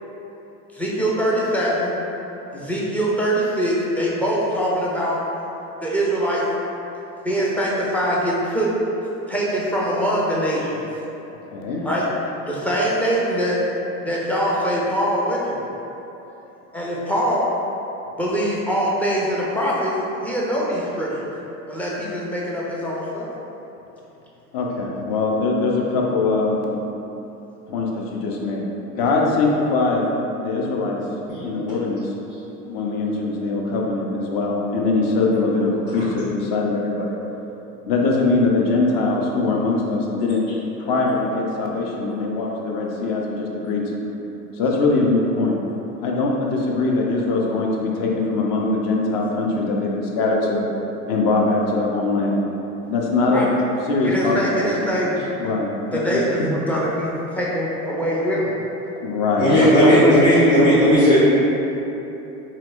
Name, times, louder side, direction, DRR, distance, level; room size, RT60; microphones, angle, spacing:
voice 1, 0.7-1.9 2.5-5.2 5.8-6.4 7.2-8.7 9.0-10.9 11.8-12.0 12.4-13.6 14.0-15.6 16.7-17.5 18.2-20.0 20.2-21.2 21.7-23.3 53.3-53.5 54.0-55.2 55.9-58.5 59.6-60.2, equal, 5° left, -5 dB, 0.3 m, -23 dB
voice 2, 11.5-11.8 24.5-26.7 27.7-30.1 30.4-31.0 31.4-32.1 32.6-37.2 37.9-40.4 40.8-44.1 44.5-45.6 46.0-50.7 51.1-52.4 52.9-53.4 53.9-54.8 55.4-56.5 59.0-59.5, left 3 dB, 50° left, -1 dB, 0.8 m, -22 dB
voice 3, 59.4-61.2, equal, 80° left, -15 dB, 1.4 m, -14 dB
4.4 x 3.0 x 2.5 m, 3.0 s
hypercardioid pair, 85°, 46 cm